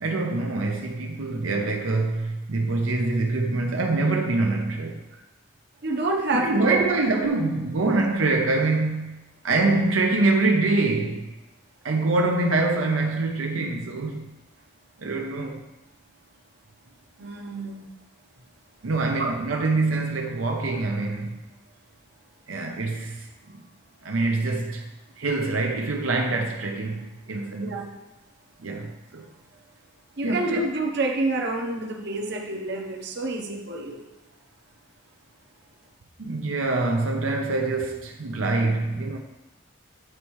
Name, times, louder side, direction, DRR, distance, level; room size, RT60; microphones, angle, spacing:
voice 1, 0.0-5.0 6.3-11.3 11.8-14.3 15.0-15.6 18.8-21.3 22.5-23.6 24.0-24.9 25.2-27.9 28.6-29.3 30.2-30.6 36.2-39.2, right 3 dB, 85° right, 0.7 m, -25 dB
voice 2, 5.8-6.8 17.2-17.9 19.2-19.3 27.6-27.9 30.2-34.0, right 2 dB, 55° right, 0.8 m, -28 dB
8.9 x 4.4 x 3.1 m
head